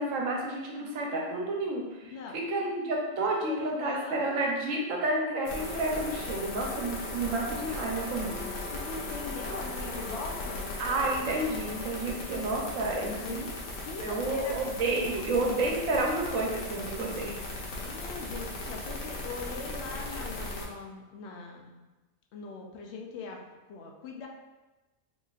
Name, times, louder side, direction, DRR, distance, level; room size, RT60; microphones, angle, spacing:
voice 1, 0.0-8.4 10.8-13.4 14.0-17.4 20.1-20.2, right 2 dB, 70° right, -1 dB, 1.0 m, -30 dB
voice 2, 3.4-4.4 8.3-10.6 13.1-14.6 17.8-21.8 22.3-24.3, left 4 dB, 65° left, 1 dB, 0.7 m, -41 dB
sound 1, 5.4-20.6, left 2 dB, 85° left, 1.2 m, -37 dB
3.9 x 2.9 x 2.4 m, 1.1 s
omnidirectional pair, 1.5 m